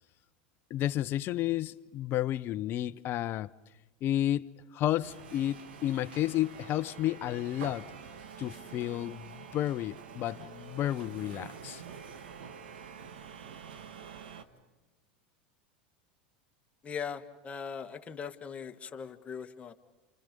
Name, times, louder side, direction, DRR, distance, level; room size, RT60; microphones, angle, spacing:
voice 1, 0.7-3.5 4.0-7.9 8.4-11.8, left 13 dB, 45° left, 0.8 m, -32 dB
sound 1, 5.0-14.4, right 6 dB, 80° right, 1.7 m, -47 dB
voice 2, 16.8-19.7, left 6 dB, 25° left, 1.6 m, -40 dB
29.0 x 28.5 x 5.3 m
hypercardioid pair, 105°, 5 cm